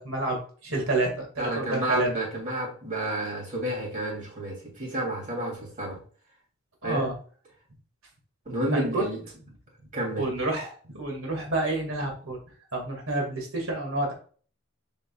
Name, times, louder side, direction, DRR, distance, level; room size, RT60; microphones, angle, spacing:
voice 1, 0.0-2.1 6.8-7.1 8.7-9.0 10.2-12.4 12.7-14.1, right 2 dB, 85° right, 2.2 m, -29 dB
voice 2, 1.4-6.0 6.8-7.1 8.4-9.2 9.9-10.3, right 1 dB, 40° right, 3.1 m, -30 dB
6.9 x 5.6 x 2.4 m
head